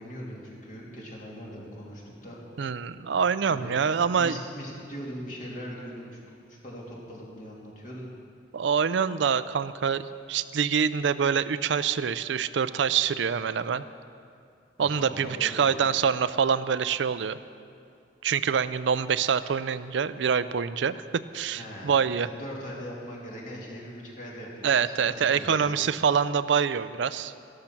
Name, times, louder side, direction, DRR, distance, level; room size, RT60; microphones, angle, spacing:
voice 1, 0.0-2.4 3.5-6.2 6.5-8.1 14.8-15.8 21.5-25.7, equal, 45° left, -4 dB, 3.0 m, -40 dB
voice 2, 2.6-4.4 8.5-13.8 14.8-17.4 18.2-21.0 21.3-22.3 24.6-27.3, right 7 dB, 80° right, 14 dB, 0.4 m, -25 dB
13.5 x 13.0 x 5.9 m, 2.5 s
head